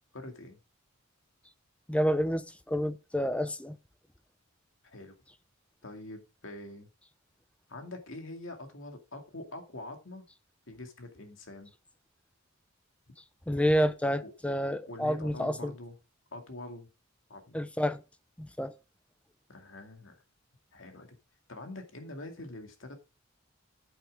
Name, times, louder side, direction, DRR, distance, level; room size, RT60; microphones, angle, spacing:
voice 1, 0.1-0.6 4.8-5.2 5.8-6.9 7.7-10.3 10.7-11.7 14.2-14.3 14.9-16.0 16.3-16.9 17.3-17.6 19.5-20.2 20.7-21.2 21.5-22.9, left 2 dB, 65° left, 2.3 m, -44 dB
voice 2, 1.9-3.8 13.5-15.7 17.5-18.0 18.4-18.7, equal, 5° left, 0.5 m, -29 dB
9.0 x 8.9 x 3.6 m
head